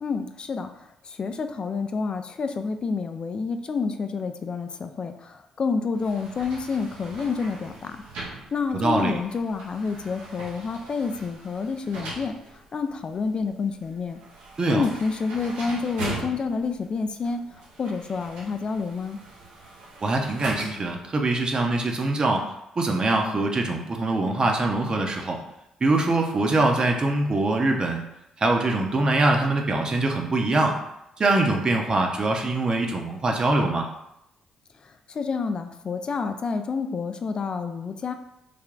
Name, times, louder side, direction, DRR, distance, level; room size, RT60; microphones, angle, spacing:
voice 1, 0.0-8.0 8.5-14.2 14.7-17.4 17.8-19.2 34.8-38.1, left 4 dB, 45° left, 7 dB, 0.3 m, -29 dB
sound 1, 5.9-21.0, right 2 dB, 80° right, 0.6 m, -41 dB
voice 2, 8.7-9.1 14.6-14.9 20.0-25.4 25.8-28.0 28.4-30.8 31.2-33.9, right 2 dB, 40° right, 2 dB, 0.7 m, -23 dB
3.3 x 2.2 x 3.7 m, 0.83 s
hypercardioid pair, 50°, 2 cm